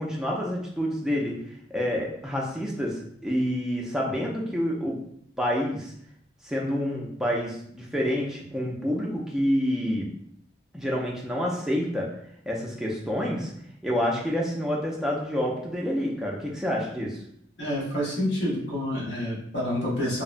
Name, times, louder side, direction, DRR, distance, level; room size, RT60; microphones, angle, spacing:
voice 1, 0.0-1.4 1.7-5.0 5.4-5.9 6.4-10.1 10.7-12.1 12.5-13.5 13.8-17.2, equal, 5° right, -3 dB, 0.4 m, -28 dB
voice 2, 17.6-20.2, left 1 dB, 80° left, -7 dB, 1.0 m, -28 dB
2.7 x 2.1 x 2.4 m, 0.70 s
head